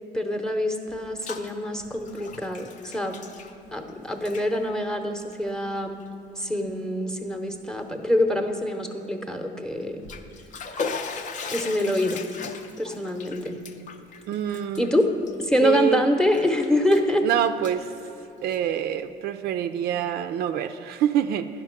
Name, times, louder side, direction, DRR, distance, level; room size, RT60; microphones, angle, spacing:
voice 1, 0.1-3.2 3.7-6.1 6.4-10.0 11.5-12.2 12.8-13.5 14.8-15.1 15.4-17.3, left 1 dB, 5° left, 5 dB, 0.8 m, -25 dB
Bathtub (filling or washing), 0.9-1.5 1.8-3.9 4.2-4.5 5.2-5.4 6.0-6.1 6.5-6.6 9.8-15.9 16.3-17.1 17.4-18.8, left 5 dB, 50° left, 0.6 m, -37 dB
voice 2, 14.3-14.9 15.6-16.0 17.2-17.9 18.4-21.5, right 10 dB, 70° right, 9 dB, 0.4 m, -26 dB
10.5 x 5.0 x 5.9 m, 2.7 s
cardioid pair, 110°, 17 cm